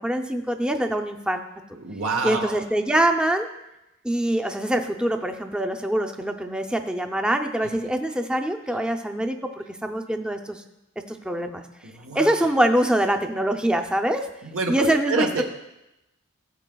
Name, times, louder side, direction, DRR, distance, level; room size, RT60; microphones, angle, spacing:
voice 1, 0.0-1.4 2.2-3.5 4.0-10.6 11.1-11.6 12.1-14.3 14.7-15.4, right 1 dB, 5° right, 4 dB, 0.5 m, -24 dB
voice 2, 1.7-2.6 11.8-12.3 14.4-15.4, right 3 dB, 90° right, 2 dB, 1.2 m, -27 dB
16.0 x 7.7 x 2.3 m, 0.91 s
head